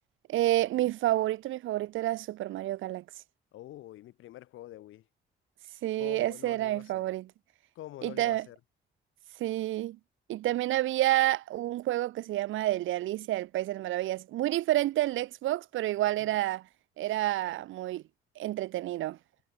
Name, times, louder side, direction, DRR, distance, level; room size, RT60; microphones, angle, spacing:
voice 1, 0.3-3.0 5.8-7.3 8.0-8.5 9.4-10.0 10.3-16.6 17.0-18.0 18.4-19.2, right 15 dB, 80° right, 0.9 m, -29 dB
voice 2, 3.5-5.0 6.0-7.0 7.8-8.6 16.2-16.4, left 14 dB, 85° left, 3.5 m, -46 dB
cardioid pair, 90°, 20 cm